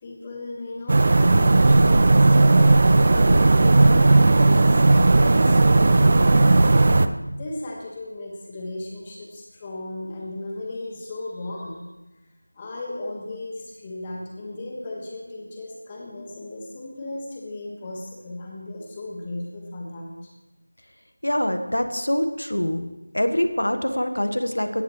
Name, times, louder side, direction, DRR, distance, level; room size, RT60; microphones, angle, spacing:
voice 1, 0.0-6.5 7.3-11.8 12.5-20.3, left 2 dB, 15° left, -1 dB, 1.6 m, -35 dB
sound 1, 0.9-7.1, right 2 dB, 35° right, 0.5 m, -16 dB
voice 2, 21.2-22.8 23.1-24.8, left 1 dB, 75° left, 7 dB, 1.5 m, -24 dB
17.0 x 12.0 x 3.2 m, 1.0 s
figure-of-eight pair, 170°, 0 cm